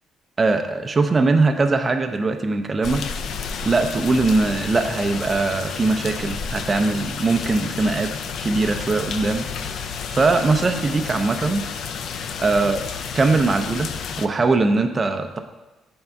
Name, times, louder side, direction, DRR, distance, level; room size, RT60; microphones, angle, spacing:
voice 1, 0.4-3.0 3.6-8.1 8.4-9.5 10.1-11.6 12.4-12.9 13.1-13.9 14.2-15.4, right 3 dB, 25° right, 5 dB, 0.4 m, -21 dB
sound 1, 2.8-14.3, left 6 dB, 60° left, 0.3 m, -31 dB
6.9 x 3.5 x 4.4 m, 1.1 s
cardioid pair, 140°, 0 cm